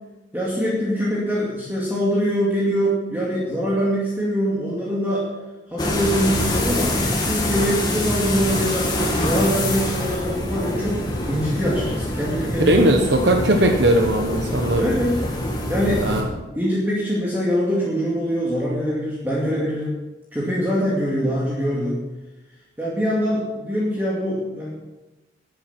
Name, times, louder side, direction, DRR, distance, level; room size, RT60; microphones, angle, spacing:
voice 1, 0.3-5.3 5.7-8.9 9.2-13.0 13.3-13.4 14.8-15.2 15.7-20.0 20.3-22.0 22.8-24.7, equal, 10° right, -7 dB, 2.4 m, -23 dB
sound 1, 5.8-16.2, left 1 dB, 20° left, 2.2 m, -25 dB
voice 2, 12.7-14.9 16.0-16.3, right 1 dB, 70° right, 4 dB, 1.1 m, -18 dB
12.5 x 9.6 x 6.0 m, 1.1 s
head